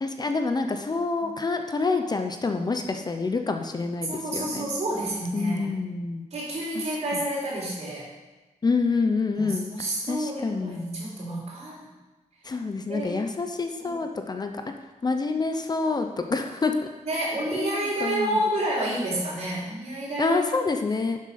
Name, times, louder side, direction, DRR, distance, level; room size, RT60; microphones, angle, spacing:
voice 1, 0.0-4.7 5.3-6.2 6.7-6.8 7.1-7.2 8.6-10.9 12.4-14.5 15.0-16.9 17.5-18.4 20.2-21.2, left 4 dB, 35° left, 6 dB, 0.8 m, -27 dB
voice 2, 4.1-5.7 6.3-8.1 9.3-11.9 12.9-13.2 13.8-14.0 17.1-20.4, right 1 dB, 60° right, -4 dB, 4.1 m, -29 dB
11.5 x 7.5 x 5.9 m, 1.1 s
wide cardioid pair, 170°, 13 cm